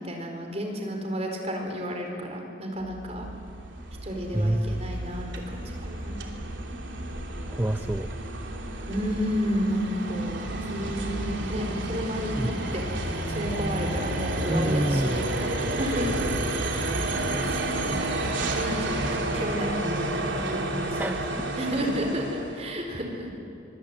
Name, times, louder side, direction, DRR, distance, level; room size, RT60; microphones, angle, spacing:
voice 1, 0.0-3.3 4.0-6.3 8.9-12.8 13.3-16.8 17.4-18.1 18.4-23.3, equal, 35° right, 3 dB, 4.3 m, -32 dB
sound 1, 2.8-22.6, right 1 dB, 75° right, 3.2 m, -31 dB
voice 2, 4.3-4.8 7.5-8.1 12.4-12.5 14.5-15.2 21.0-21.2, right 1 dB, 10° right, 8 dB, 0.5 m, -26 dB
24.0 x 23.0 x 8.9 m, 2.7 s
head